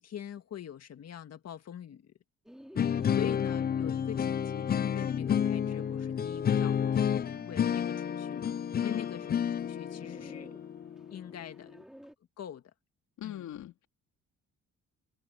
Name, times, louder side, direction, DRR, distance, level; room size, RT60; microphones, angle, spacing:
voice 1, 0.0-2.1 3.2-9.3 9.6-10.5 11.1-11.8 12.4-12.7 13.2-13.4, left 9 dB, 55° left, 2.0 m, -44 dB
Bird, 2.5-12.1, equal, ahead, 3.3 m, -54 dB
sound 1, 2.8-11.7, left 8 dB, 30° left, 0.5 m, -30 dB
voice 2, 3.0-3.4 8.8-9.1 13.2-13.9, left 12 dB, 70° left, 3.0 m, -41 dB
cardioid pair, 90°, 30 cm